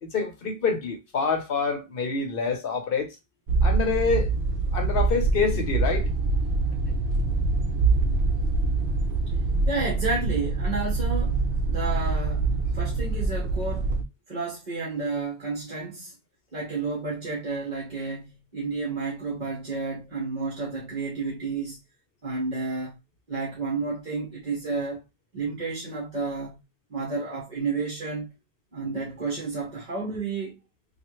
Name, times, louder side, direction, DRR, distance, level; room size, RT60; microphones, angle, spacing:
voice 1, 0.0-3.2 3.6-4.3 4.7-6.1 6.9-7.0, left 4 dB, 60° left, 0.9 m, -27 dB
sound 1, 3.5-14.0, right 3 dB, 75° right, 0.8 m, -25 dB
voice 2, 9.7-12.4 12.7-13.9 14.3-16.1 16.5-21.8 22.2-23.0 23.3-25.0 25.3-26.6 26.9-28.3 28.7-30.5, right 4 dB, 45° right, 1.1 m, -31 dB
3.2 x 2.4 x 3.0 m
omnidirectional pair, 1.1 m